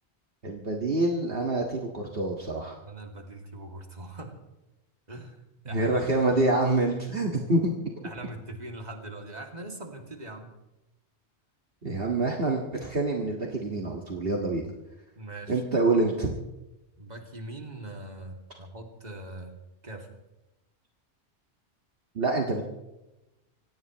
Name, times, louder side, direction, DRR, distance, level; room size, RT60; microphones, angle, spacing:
voice 1, 0.4-2.8 5.7-7.7 11.8-14.6 15.5-16.3 22.2-22.6, right 2 dB, 55° right, 0 dB, 2.0 m, -26 dB
voice 2, 2.8-4.3 5.1-6.0 8.0-10.5 15.2-15.6 17.0-19.5 19.8-20.2, right 2 dB, 35° right, 2 dB, 2.6 m, -41 dB
26.0 x 18.0 x 3.1 m, 0.97 s
omnidirectional pair, 1.2 m